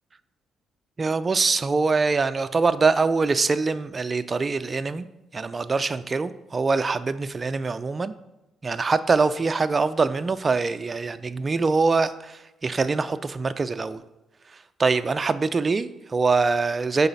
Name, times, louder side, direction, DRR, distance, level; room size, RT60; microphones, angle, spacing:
voice 1, 1.0-5.1 5.3-8.1 8.6-14.0 14.8-17.1, right 4 dB, 30° right, 11 dB, 0.4 m, -23 dB
7.0 x 4.0 x 5.5 m, 0.98 s
cardioid pair, 90°, 0 cm